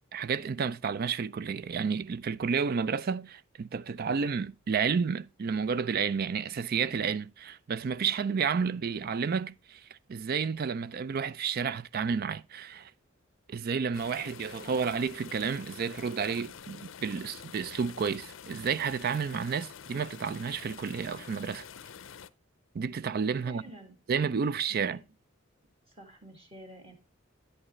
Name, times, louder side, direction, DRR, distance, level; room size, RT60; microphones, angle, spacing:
voice 1, 0.1-9.8 10.1-12.9 13.5-21.7 22.7-23.6 24.1-25.0, right 6 dB, 50° right, 0.4 m, -31 dB
sound 1, 13.9-22.3, left 7 dB, 65° left, 0.5 m, -47 dB
voice 2, 23.5-24.0 24.7-25.0 25.9-26.9, right 1 dB, 30° right, 1.9 m, -50 dB
9.9 x 8.7 x 3.0 m
head